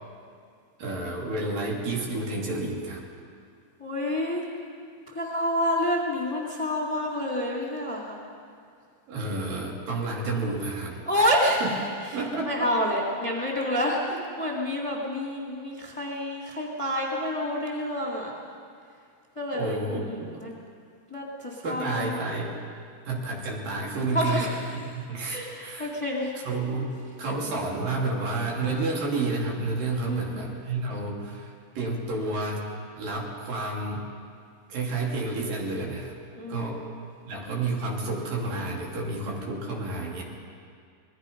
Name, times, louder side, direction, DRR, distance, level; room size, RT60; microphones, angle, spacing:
voice 1, 0.8-3.0 9.1-11.3 11.6-12.7 19.5-20.5 21.6-22.5 23.1-24.5 24.9-25.9 26.4-32.7 33.0-34.0 34.7-36.1 36.5-36.8 37.3-40.2, right 3 dB, 75° right, -2 dB, 4.7 m, -30 dB
voice 2, 3.8-4.5 5.1-8.2 11.1-11.6 12.0-14.0 14.4-18.3 19.4-20.5 21.1-22.4 24.1-24.6 25.3-26.3 30.0-30.5 36.3-37.0 40.0-40.2, left 1 dB, 10° left, -2 dB, 2.4 m, -28 dB
26.0 x 20.5 x 5.4 m, 2.2 s
omnidirectional pair, 4.0 m